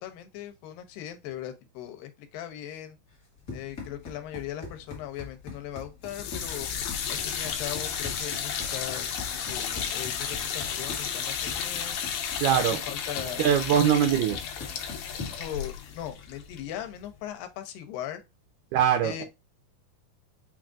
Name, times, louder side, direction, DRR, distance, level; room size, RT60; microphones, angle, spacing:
voice 1, 0.0-3.0 3.5-6.7 7.1-9.2 9.5-12.0 12.5-13.6 15.4-18.2 19.0-19.2, left 11 dB, 90° left, 2.4 m, -39 dB
Run, 3.1-15.6, left 4 dB, 55° left, 0.9 m, -43 dB
sound 1, 6.0-17.1, left 7 dB, 75° left, 2.0 m, -33 dB
voice 2, 12.4-12.8 13.4-14.4 18.7-19.2, right 9 dB, 80° right, 1.8 m, -22 dB
5.8 x 2.5 x 2.4 m
omnidirectional pair, 4.0 m